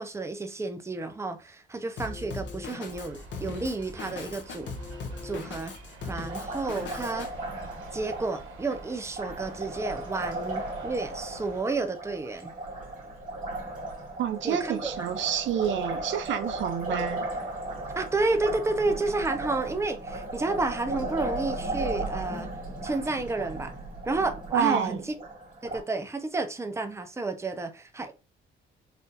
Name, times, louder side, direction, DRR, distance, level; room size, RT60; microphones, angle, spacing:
voice 1, 0.0-4.7 5.2-5.8 6.1-7.3 7.9-12.5 14.4-15.1 17.9-22.5 22.8-23.7 24.1-25.1 25.6-28.1, right 3 dB, 15° right, 0.7 m, -31 dB
Drum kit, 2.0-7.3, left 4 dB, 70° left, 0.9 m, -39 dB
sound 1, 2.8-11.6, right 3 dB, 85° right, 1.2 m, -48 dB
Liquid, 6.3-25.8, right 2 dB, 45° right, 2.0 m, -36 dB
voice 2, 14.2-17.3 24.5-25.0, right 9 dB, 70° right, 0.5 m, -28 dB
4.2 x 2.7 x 2.6 m
cardioid pair, 90°, 20 cm